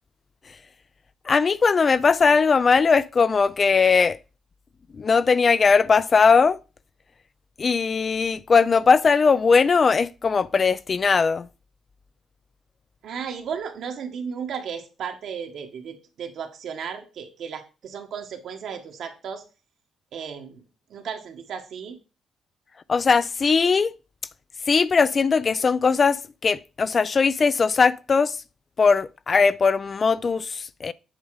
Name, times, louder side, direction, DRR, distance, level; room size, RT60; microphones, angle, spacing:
voice 1, 1.3-4.2 5.0-6.6 7.6-11.5 22.9-23.9 24.7-28.4 28.8-30.9, left 5 dB, 40° left, 0.3 m, -19 dB
voice 2, 13.0-19.4 20.1-20.6 20.9-22.0, right 7 dB, 70° right, 1.4 m, -34 dB
8.1 x 3.7 x 4.8 m
cardioid pair, 90°, 0 cm